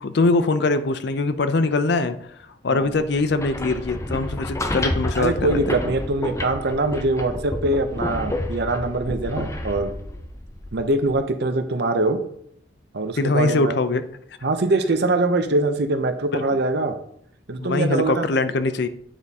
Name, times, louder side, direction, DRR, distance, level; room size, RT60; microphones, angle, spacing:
voice 1, 0.0-2.2 2.6-5.8 13.2-14.0 16.3-16.4 17.6-18.9, left 3 dB, 65° left, 11 dB, 0.5 m, -22 dB
sound 1, 3.2-11.2, left 1 dB, 15° left, 0.6 m, -30 dB
voice 2, 5.2-9.9 10.7-12.2 12.9-13.7 14.4-17.0 17.5-18.3, right 2 dB, 65° right, 7 dB, 0.7 m, -23 dB
9.1 x 3.5 x 4.1 m, 0.69 s
head